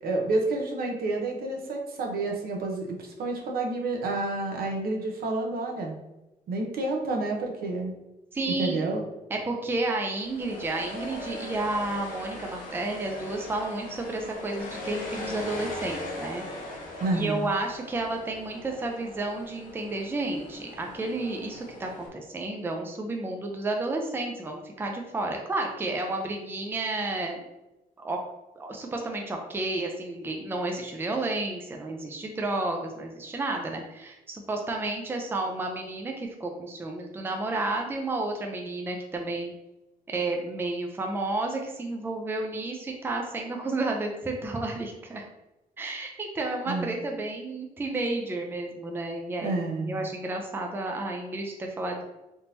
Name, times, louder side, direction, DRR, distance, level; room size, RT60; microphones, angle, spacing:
voice 1, 0.0-6.0 6.5-7.9 8.5-9.0 17.0-17.5 46.7-46.9 49.4-50.0, right 2 dB, 75° right, 1 dB, 0.8 m, -29 dB
voice 2, 8.3-8.9 9.3-16.4 17.1-27.4 28.0-28.2 28.6-39.5 40.1-45.3 45.8-52.0, right 2 dB, 15° right, 2 dB, 0.4 m, -31 dB
sound 1, 10.2-22.1, left 1 dB, 60° left, 0.8 m, -40 dB
3.6 x 2.8 x 2.6 m, 0.96 s
cardioid pair, 140°, 15 cm